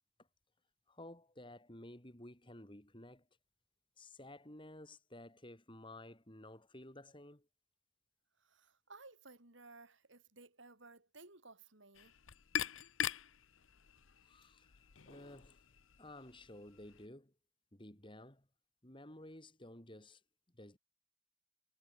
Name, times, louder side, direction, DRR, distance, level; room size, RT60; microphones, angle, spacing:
voice 1, 0.9-3.3 4.0-7.5 14.2-15.6 16.0-17.3 17.7-18.5 18.8-20.2 20.5-20.8, left 1 dB, 25° left, 3.5 m, -54 dB
voice 2, 8.4-12.2, right 3 dB, 65° right, 3.8 m, -58 dB
sound 1, 11.9-17.1, left 9 dB, 75° left, 0.9 m, -44 dB
head